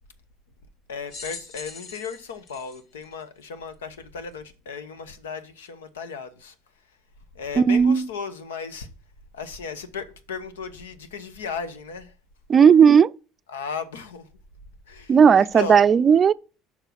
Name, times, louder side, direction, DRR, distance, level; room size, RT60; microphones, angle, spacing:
voice 1, 0.9-6.5 7.3-8.9 9.3-12.1 13.5-14.3 14.9-15.9, left 5 dB, 85° left, 1.0 m, -35 dB
sound 1, 1.1-3.7 4.4-4.5 5.7-5.8, left 4 dB, 60° left, 2.0 m, -42 dB
voice 2, 7.6-8.1 12.5-13.1 15.1-16.3, right 7 dB, 40° right, 0.4 m, -15 dB
6.8 x 5.9 x 5.9 m
hypercardioid pair, 65°, 0 cm